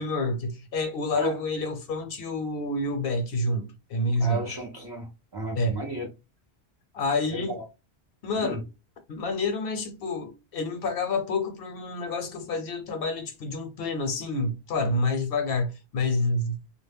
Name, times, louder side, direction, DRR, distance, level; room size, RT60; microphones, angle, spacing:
voice 1, 0.0-4.4 5.5-5.8 6.9-7.6 8.2-8.6 9.1-16.6, left 2 dB, 65° left, 0.7 m, -28 dB
voice 2, 4.2-6.1 7.3-7.4 8.4-8.6, right 2 dB, 35° right, 0.4 m, -33 dB
2.1 x 2.0 x 3.3 m
omnidirectional pair, 1.1 m